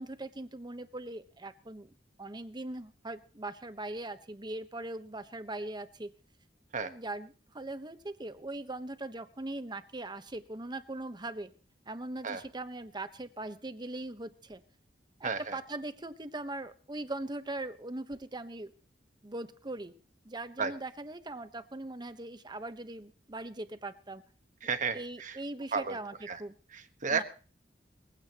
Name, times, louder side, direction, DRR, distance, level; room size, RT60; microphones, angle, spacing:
voice 1, 0.0-1.9 2.2-6.1 6.8-11.5 11.9-14.6 15.2-18.7 19.2-19.9 20.2-24.2 24.9-26.5 27.1-27.2, right 2 dB, 25° right, 10 dB, 1.1 m, -40 dB
voice 2, 15.2-15.6 20.6-20.7 24.6-25.4 25.7-26.0 26.3-26.4 26.7-27.2, right 5 dB, 45° right, 10 dB, 1.3 m, -32 dB
21.0 x 16.0 x 3.0 m, 0.38 s
head